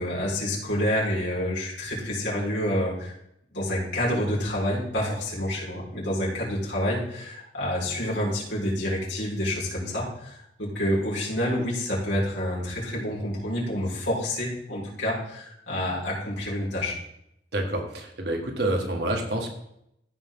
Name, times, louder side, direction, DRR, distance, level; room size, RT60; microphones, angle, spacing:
voice 1, 0.0-3.2 3.5-17.0, left 1 dB, 85° left, -5 dB, 4.6 m, -28 dB
voice 2, 17.5-19.5, right 1 dB, 65° right, 2 dB, 1.8 m, -28 dB
15.5 x 5.5 x 3.7 m, 0.76 s
head